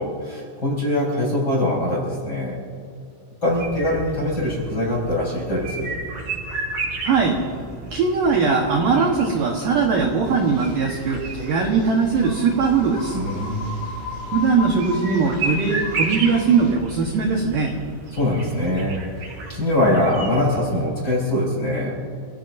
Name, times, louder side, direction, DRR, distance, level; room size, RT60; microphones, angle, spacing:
voice 1, 0.0-2.6 3.4-5.9 13.1-13.9 18.1-19.0 19.5-22.0, left 1 dB, 20° left, -3 dB, 4.4 m, -23 dB
sound 1, 3.4-20.9, right 3 dB, 40° right, 4.8 m, -33 dB
voice 2, 7.0-7.4 7.9-13.2 14.3-17.7, right 5 dB, 75° right, 0 dB, 2.0 m, -20 dB
sound 2, 10.2-16.7, left 3 dB, 80° left, 7.1 m, -37 dB
27.0 x 17.0 x 2.6 m, 2.3 s
omnidirectional pair, 5.8 m